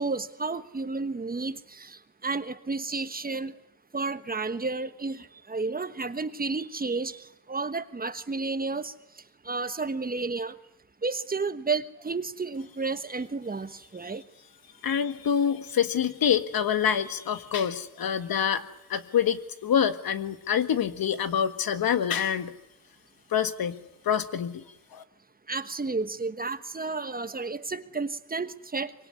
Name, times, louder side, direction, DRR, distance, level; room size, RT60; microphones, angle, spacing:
voice 1, 0.0-3.5 3.9-8.9 9.4-10.5 11.0-14.2 25.5-28.9, right 3 dB, 25° right, 11 dB, 1.3 m, -32 dB
voice 2, 14.8-22.5 23.3-23.8 24.0-24.6 24.9-25.0, left 8 dB, 70° left, 10 dB, 1.7 m, -26 dB
24.5 x 23.5 x 9.8 m, 0.79 s
wide cardioid pair, 125°, 37 cm